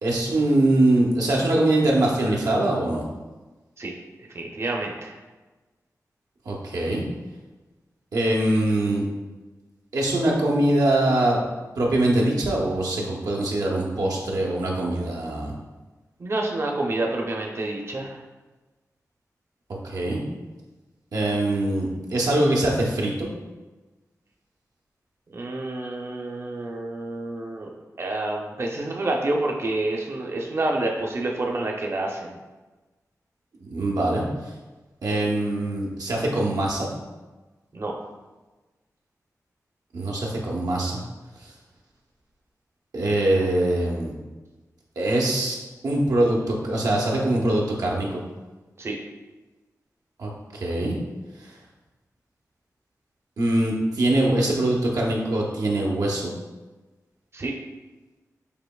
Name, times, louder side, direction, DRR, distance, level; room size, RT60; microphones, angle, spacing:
voice 1, 0.0-3.0 6.5-7.0 8.1-9.1 9.9-11.4 11.7-15.5 19.8-20.2 21.1-23.3 33.6-34.2 35.0-36.9 39.9-41.0 42.9-44.1 45.0-45.6 45.8-48.2 50.2-51.0 51.4-51.5 53.4-56.3, right 1 dB, 85° right, -2 dB, 0.9 m, -23 dB
voice 2, 4.3-5.2 16.2-18.2 25.3-32.4 37.7-38.0 48.8-49.0 57.3-57.5, right 2 dB, 45° right, 0 dB, 0.7 m, -28 dB
6.8 x 2.9 x 2.3 m, 1.2 s
wide cardioid pair, 95°, 6 cm